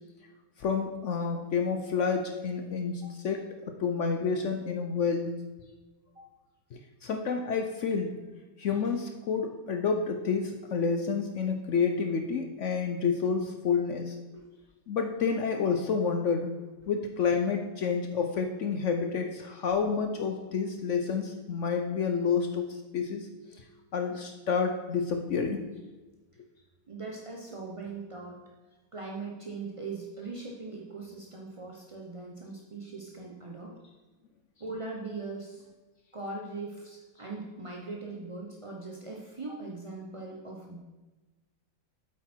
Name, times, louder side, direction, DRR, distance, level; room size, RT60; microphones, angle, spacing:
voice 1, 0.6-5.3 6.7-8.2 8.6-14.2 14.9-16.5 16.9-23.6 23.9-25.6, left 5 dB, 75° left, 5 dB, 0.6 m, -29 dB
voice 2, 26.9-28.4 28.9-33.7 34.6-35.6 36.1-40.8, right 3 dB, 40° right, -1 dB, 0.4 m, -40 dB
8.5 x 8.0 x 4.4 m, 1.2 s
omnidirectional pair, 2.1 m